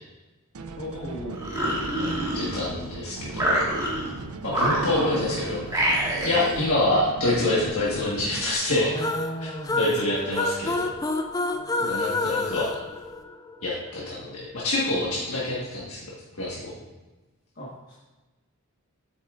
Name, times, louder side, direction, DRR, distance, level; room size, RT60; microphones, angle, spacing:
sound 1, 0.5-8.5, right 4 dB, 80° right, 0.5 m, -39 dB
voice 1, 0.8-1.9 4.7-6.0 6.4-6.7 8.7-10.1 11.7-12.3 17.5-18.0, equal, 45° left, -6 dB, 1.4 m, -37 dB
sound 2, 1.3-2.9 3.3-4.1 4.5-5.3 5.7-6.6, right 1 dB, 15° right, 1.7 m, -26 dB
voice 2, 2.3-3.6 4.4-5.6 6.2-8.9 9.8-10.9 11.9-12.7 13.6-16.0 16.4-16.7, left 2 dB, 70° left, -6 dB, 1.5 m, -26 dB
sound 3, 9.0-13.7, left 2 dB, 15° left, 0.3 m, -29 dB
8.4 x 7.3 x 2.5 m, 1.1 s
head